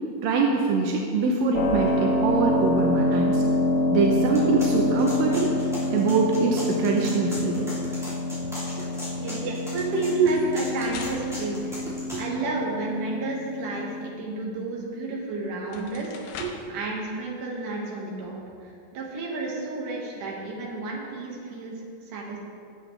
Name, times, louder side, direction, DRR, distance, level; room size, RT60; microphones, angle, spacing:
voice 1, 0.2-3.4 3.9-5.6 5.9-7.7 9.4-9.6 10.2-10.3 12.1-12.5 16.4-16.5, right 4 dB, 85° right, 0 dB, 2.6 m, -24 dB
Keyboard (musical), 1.5-14.1, left 1 dB, 70° left, 1.8 m, -27 dB
sound 1, 4.3-12.2, equal, ahead, 2.2 m, -38 dB
voice 2, 9.2-11.6 12.2-16.1 16.7-22.4, right 2 dB, 65° right, -3 dB, 3.1 m, -32 dB
sound 2, 10.2-12.6 15.0-15.1 15.6-16.8, left 5 dB, 85° left, 2.6 m, -43 dB
17.0 x 7.7 x 3.3 m, 2.4 s
omnidirectional pair, 4.0 m